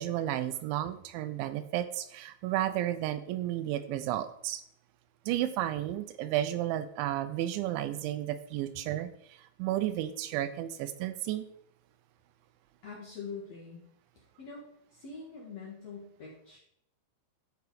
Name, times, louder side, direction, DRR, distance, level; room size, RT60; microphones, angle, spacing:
voice 1, 0.0-4.6 5.3-11.4, right 13 dB, 85° right, 11 dB, 2.9 m, -32 dB
voice 2, 12.8-13.8 14.1-14.7 14.9-16.6, left 5 dB, 55° left, -4 dB, 2.0 m, -44 dB
11.5 x 6.0 x 4.8 m, 0.70 s
omnidirectional pair, 5.4 m